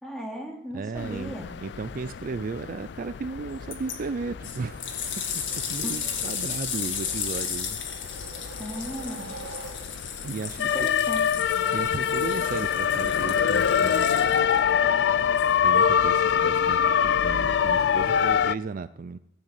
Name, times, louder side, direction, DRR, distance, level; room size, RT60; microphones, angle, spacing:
voice 1, 0.0-1.5 5.8-6.2 8.6-9.3 10.7-11.4, equal, ahead, -1 dB, 2.8 m, -36 dB
voice 2, 0.7-1.3 1.6-8.4 10.2-10.9 11.7-14.4 15.6-19.2, right 4 dB, 45° right, 13 dB, 0.4 m, -35 dB
sound 1, 1.0-18.5, left 8 dB, 65° left, 0.4 m, -26 dB
sound 2, 3.7-4.0 4.4-14.6 15.4-15.5, left 7 dB, 90° left, 2.0 m, -34 dB
sound 3, 7.2-10.3, right 3 dB, 80° right, 1.7 m, -44 dB
14.5 x 6.4 x 8.3 m, 0.84 s
head